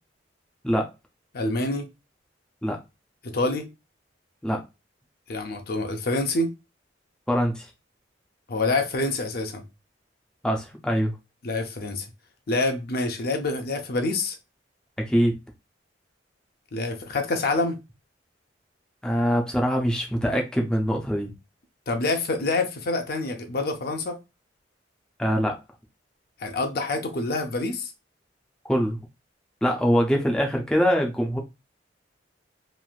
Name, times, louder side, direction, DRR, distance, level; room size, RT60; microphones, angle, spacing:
voice 1, 1.3-1.9 3.2-3.7 5.3-6.5 8.5-9.6 11.4-12.1 12.5-14.4 16.7-17.8 21.9-24.2 26.4-27.9, left 2 dB, 55° left, 0.6 m, -26 dB
voice 2, 7.3-7.7 10.4-11.1 15.1-15.3 19.0-21.3 25.2-25.6 28.7-29.0 29.6-31.4, equal, 5° left, 0.5 m, -23 dB
3.1 x 2.6 x 2.3 m
head